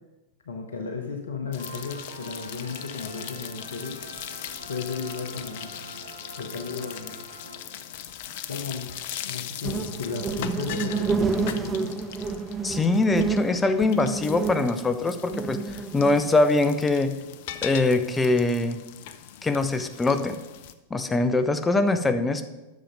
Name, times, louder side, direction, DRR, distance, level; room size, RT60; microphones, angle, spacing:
voice 1, 0.4-4.0 4.7-5.7 6.3-7.1 8.4-8.9 9.2-11.9, left 5 dB, 75° left, 4 dB, 1.1 m, -34 dB
sound 1, 1.5-20.7, left 11 dB, 55° left, 0.6 m, -40 dB
sound 2, 1.6-8.1, right 3 dB, 80° right, 1.1 m, -45 dB
sound 3, 9.6-16.2, right 4 dB, 20° right, 0.9 m, -29 dB
voice 2, 12.6-15.6 15.9-17.2 17.6-18.8 19.4-20.4 20.9-22.5, left 2 dB, 15° left, 10 dB, 0.8 m, -23 dB
11.0 x 6.8 x 5.2 m, 1.1 s
figure-of-eight pair, 95°, 0 cm